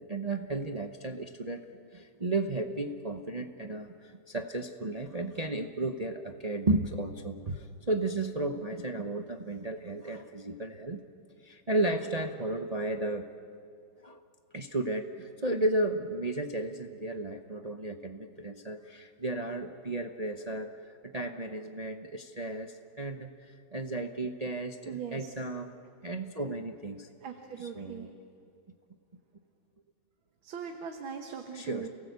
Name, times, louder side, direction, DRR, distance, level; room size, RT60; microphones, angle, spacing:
voice 1, 0.0-1.7 1.9-11.0 11.4-13.3 14.0-14.2 14.5-20.7 21.0-25.7 26.0-27.1 27.6-28.1 31.5-31.9, right 2 dB, 40° right, 5 dB, 0.5 m, -34 dB
voice 2, 24.9-25.3 27.2-28.1 30.4-31.9, right 7 dB, 85° right, 4 dB, 2.1 m, -40 dB
29.0 x 18.0 x 8.2 m, 2.4 s
omnidirectional pair, 2.1 m